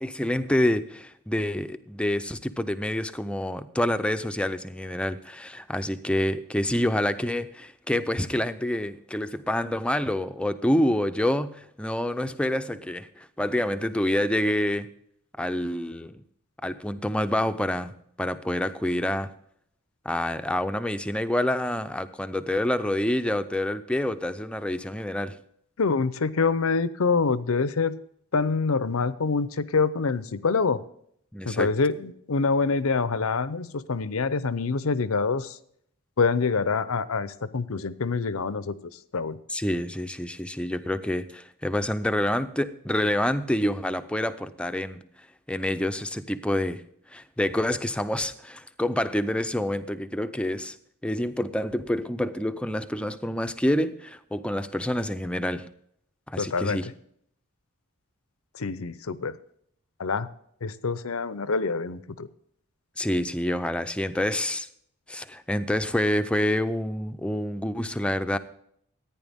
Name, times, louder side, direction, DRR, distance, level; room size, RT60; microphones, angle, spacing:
voice 1, 0.0-14.9 15.4-16.2 16.6-19.3 20.0-25.4 31.3-31.7 39.5-45.0 45.5-46.8 47.1-50.8 51.0-55.7 56.3-56.9 63.0-64.7 65.1-68.4, left 1 dB, 5° left, 10 dB, 0.5 m, -27 dB
voice 2, 25.8-28.0 28.3-30.8 31.4-35.6 36.2-39.4 56.4-56.8 58.5-59.4 60.0-60.3 60.6-62.3, left 4 dB, 75° left, 15 dB, 0.7 m, -26 dB
14.5 x 9.7 x 3.6 m, 0.69 s
head